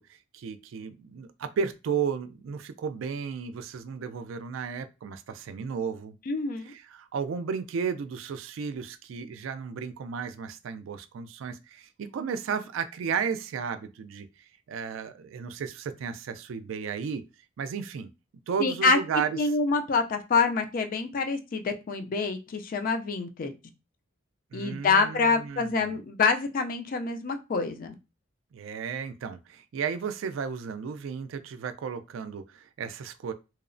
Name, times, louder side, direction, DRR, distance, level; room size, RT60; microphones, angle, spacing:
voice 1, 0.3-6.2 6.7-14.3 14.7-17.2 17.6-18.1 18.5-19.4 24.5-26.0 28.5-33.3, right 6 dB, 80° right, 0.3 m, -34 dB
voice 2, 6.3-6.7 18.6-19.0 19.3-23.5 24.5-27.9, left 4 dB, 45° left, 0.4 m, -26 dB
2.8 x 2.0 x 2.5 m
head